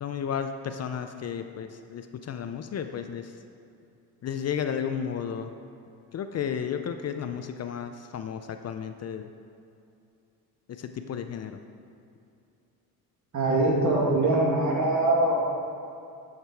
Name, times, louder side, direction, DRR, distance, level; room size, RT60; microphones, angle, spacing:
voice 1, 0.0-3.3 4.2-5.5 6.1-9.3 10.7-11.6, left 8 dB, 45° left, 8 dB, 0.5 m, -33 dB
voice 2, 13.3-15.4, right 2 dB, 50° right, -2 dB, 2.2 m, -23 dB
9.8 x 6.6 x 4.5 m, 2.6 s
cardioid pair, 95°, 38 cm